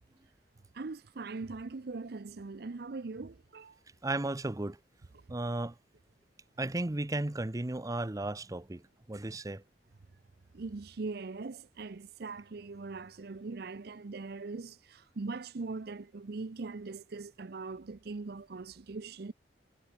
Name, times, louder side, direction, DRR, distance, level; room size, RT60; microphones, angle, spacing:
voice 1, 0.7-3.8 10.5-19.3, right 3 dB, 60° right, 0.6 m, -41 dB
voice 2, 4.0-4.8 5.3-5.8 6.6-8.8 9.1-9.6, right 2 dB, 20° right, 0.6 m, -34 dB
head